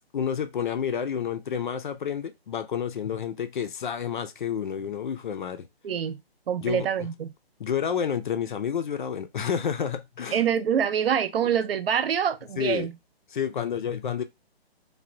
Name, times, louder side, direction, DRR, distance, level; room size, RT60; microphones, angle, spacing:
voice 1, 0.1-5.7 6.6-7.1 7.6-10.4 12.6-12.9 13.3-14.2, left 8 dB, 50° left, 0.4 m, -29 dB
voice 2, 5.8-6.2 6.5-7.3 10.3-12.9, right 8 dB, 65° right, 0.5 m, -25 dB
3.3 x 2.2 x 2.5 m
hypercardioid pair, 155°, 32 cm